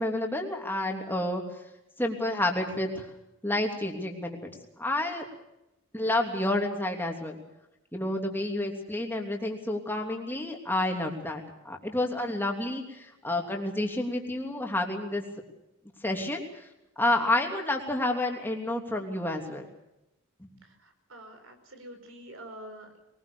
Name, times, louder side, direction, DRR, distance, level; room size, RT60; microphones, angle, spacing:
voice 1, 0.0-1.4 2.0-3.1 3.4-4.5 4.8-5.3 5.9-7.4 7.9-15.2 16.0-16.6 17.0-19.7 20.4-20.5, left 1 dB, 10° left, 2 dB, 3.1 m, -29 dB
voice 2, 20.6-23.0, right 1 dB, 70° right, 7 dB, 4.8 m, -47 dB
22.5 x 21.0 x 7.0 m, 0.90 s
head